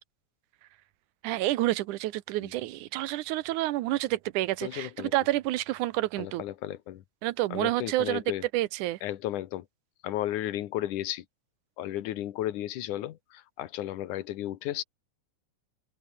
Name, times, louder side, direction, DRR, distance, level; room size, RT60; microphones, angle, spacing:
voice 1, 1.2-6.4 7.2-8.2 8.5-9.0, right 16 dB, 90° right, 2.3 m, -29 dB
voice 2, 4.6-5.1 6.2-7.0 7.5-8.4 9.0-9.7 10.0-11.3 11.8-14.8, left 13 dB, 85° left, 2.7 m, -34 dB
open air
omnidirectional pair, 3.5 m